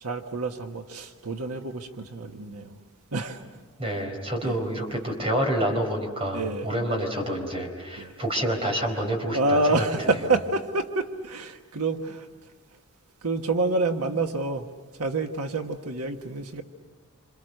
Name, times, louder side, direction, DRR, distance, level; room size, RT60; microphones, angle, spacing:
voice 1, 0.0-2.7 3.1-3.4 4.4-4.6 6.3-6.7 8.0-8.1 9.3-12.3 13.2-14.7 15.0-16.6, right 2 dB, 90° right, 5 dB, 1.4 m, -27 dB
voice 2, 3.8-9.9, right 1 dB, 25° right, 3 dB, 4.3 m, -28 dB
28.0 x 27.5 x 6.6 m, 1.3 s
head